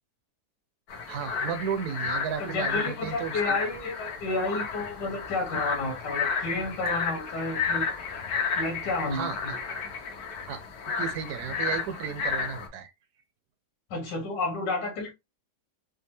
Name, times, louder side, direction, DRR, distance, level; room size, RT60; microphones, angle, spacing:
sound 1, 0.9-12.7, left 5 dB, 65° left, 1.3 m, -32 dB
voice 1, 1.1-3.5 9.1-9.4 10.5-12.9, right 7 dB, 70° right, 1.1 m, -34 dB
voice 2, 2.4-7.9 8.6-9.6 13.9-15.1, left 2 dB, 90° left, 1.6 m, -31 dB
5.2 x 2.1 x 2.9 m
omnidirectional pair, 1.8 m